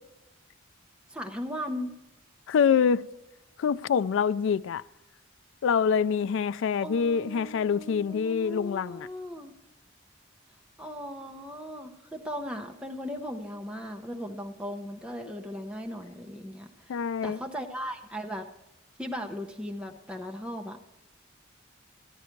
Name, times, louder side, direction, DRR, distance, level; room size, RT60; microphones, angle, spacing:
voice 1, 1.1-1.9 6.8-9.5 10.8-17.0 17.2-18.5 19.0-20.8, equal, 5° right, 0.7 m, -37 dB
voice 2, 2.5-3.0 3.6-4.8 5.6-9.1 15.2-15.3 16.9-17.4, left 6 dB, 60° left, 0.3 m, -25 dB
14.5 x 10.5 x 4.5 m
head